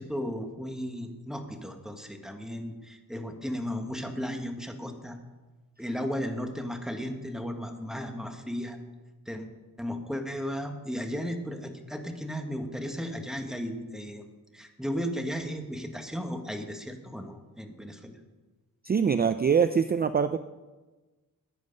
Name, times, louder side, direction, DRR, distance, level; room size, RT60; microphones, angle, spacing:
voice 1, 0.0-5.2 5.8-8.8 9.2-9.5 9.8-14.3 14.5-18.2, equal, ahead, 4 dB, 1.5 m, -35 dB
voice 2, 18.8-20.4, right 6 dB, 30° right, 11 dB, 0.4 m, -24 dB
14.5 x 9.4 x 5.3 m, 1.2 s
cardioid pair, 100°, 35 cm